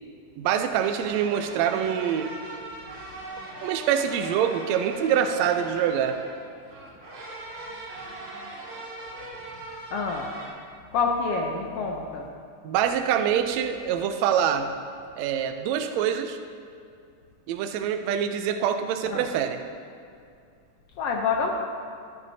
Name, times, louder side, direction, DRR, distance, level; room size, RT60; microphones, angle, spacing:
voice 1, 0.4-2.3 3.6-6.2 12.6-14.7 15.2-16.4 17.5-19.6, right 9 dB, 80° right, 7 dB, 1.6 m, -25 dB
sound 1, 0.8-10.5, right 2 dB, 65° right, 3.0 m, -40 dB
voice 2, 9.9-10.3 10.9-12.3 19.1-19.3 21.0-21.5, left 4 dB, 80° left, 1 dB, 1.3 m, -27 dB
13.5 x 10.5 x 2.7 m, 2.4 s
omnidirectional pair, 3.6 m